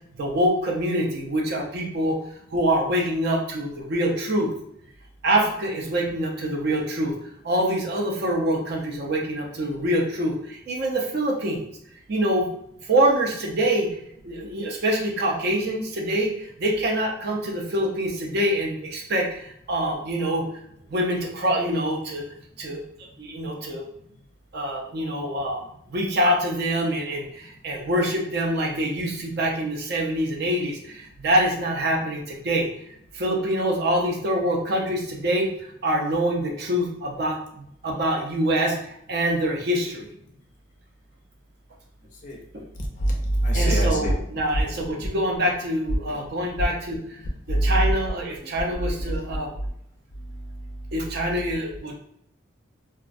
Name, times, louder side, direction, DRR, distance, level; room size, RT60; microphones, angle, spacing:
voice 1, 0.1-4.5 5.2-7.1 7.4-11.6 12.1-12.5 12.8-13.9 14.2-20.5 20.9-22.2 22.6-22.8 23.2-23.8 24.5-32.7 33.1-35.5 35.8-40.1 42.5-42.6 43.5-47.2 47.5-49.5 50.9-51.9, right 1 dB, 50° right, 0 dB, 0.5 m, -25 dB
voice 2, 42.8-44.2 44.5-44.6 47.5-47.9 50.1-50.9, right 1 dB, 35° left, 0 dB, 0.4 m, -24 dB
2.3 x 2.1 x 2.5 m, 0.73 s
head